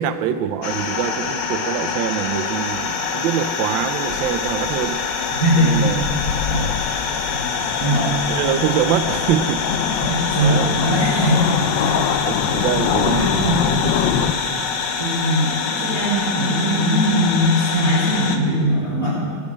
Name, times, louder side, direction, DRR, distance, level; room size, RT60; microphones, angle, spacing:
voice 1, 0.0-5.1 5.5-6.0 6.6-6.7 7.7-10.1 10.4-10.7 12.2-13.8 14.1-14.4, right 9 dB, 80° right, 10 dB, 1.4 m, -24 dB
sound 1, 0.6-18.4, left 5 dB, 65° left, 1.7 m, -25 dB
sound 2, 4.1-14.3, left 9 dB, 85° left, 1.4 m, -25 dB
voice 2, 5.3-5.9 6.2-6.7 7.3-8.2 9.7-12.1 13.2-14.0 14.3-14.6 15.0-19.1, equal, 15° left, -11 dB, 4.3 m, -21 dB
19.5 x 7.4 x 8.6 m, 2.1 s
omnidirectional pair, 2.1 m